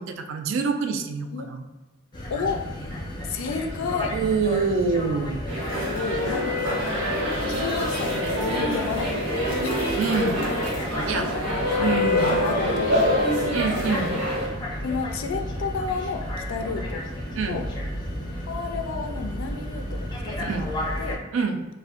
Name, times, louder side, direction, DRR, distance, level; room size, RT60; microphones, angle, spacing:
voice 1, 0.0-1.6 4.1-5.4 10.0-10.4 11.1-11.3 11.8-12.4 13.5-14.2 17.3-17.6 20.4-20.7 21.3-21.6, right 5 dB, 70° right, 6 dB, 0.3 m, -26 dB
sound 1, 2.1-21.1, equal, 20° left, 0.5 m, -33 dB
voice 2, 2.3-2.6 3.3-4.2 5.9-6.9 7.4-10.0 10.8-11.7 12.1-13.3 14.8-17.1 17.5-17.7 18.3-20.7 21.0-21.2, left 5 dB, 80° left, 6 dB, 0.3 m, -32 dB
sound 2, 5.5-14.5, left 1 dB, 85° right, 1.1 m, -25 dB
2.5 x 2.1 x 3.5 m, 1.1 s
head